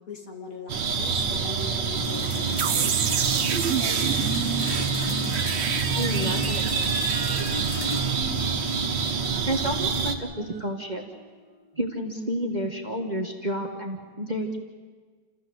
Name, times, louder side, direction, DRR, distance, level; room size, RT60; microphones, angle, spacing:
voice 1, 0.1-3.0, left 3 dB, 50° left, 2 dB, 2.5 m, -40 dB
sound 1, 0.7-10.1, right 5 dB, 90° right, 2.1 m, -27 dB
sound 2, 2.0-12.6, left 6 dB, 75° left, 0.4 m, -39 dB
sound 3, 2.6-9.4, right 8 dB, 55° right, 0.8 m, -30 dB
voice 2, 5.9-6.9 7.8-7.9 9.4-11.0 11.7-14.6, right 1 dB, 25° right, 3 dB, 1.5 m, -30 dB
29.0 x 14.5 x 7.9 m, 1.5 s
omnidirectional pair, 1.9 m